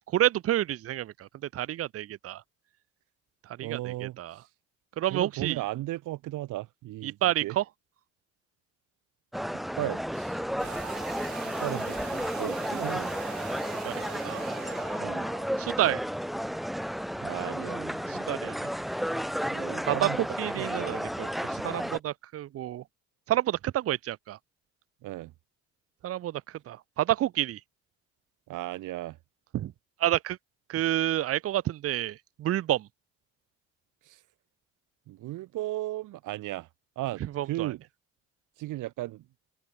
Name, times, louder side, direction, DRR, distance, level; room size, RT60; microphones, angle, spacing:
voice 1, 0.1-2.4 3.4-4.4 5.0-5.6 7.0-7.6 13.8-14.5 15.6-16.0 18.1-18.7 19.8-20.1 20.4-22.8 23.3-24.4 26.0-27.6 29.5-29.7 30.0-30.4 30.7-32.9 37.2-37.7, right 13 dB, 50° right, 0.5 m, -29 dB
voice 2, 3.6-4.4 5.1-7.6 9.8-10.4 11.6-13.1 15.0-15.3 17.2-18.1 19.5-20.3 20.6-21.0 25.0-25.3 28.5-29.2 34.0-34.2 35.1-36.7 36.9-37.8 38.6-39.2, right 16 dB, 90° right, 1.7 m, -36 dB
sound 1, 9.3-22.0, equal, ahead, 0.6 m, -32 dB
sound 2, 10.6-15.6, right 12 dB, 70° right, 2.6 m, -42 dB
cardioid pair, 90°, 30 cm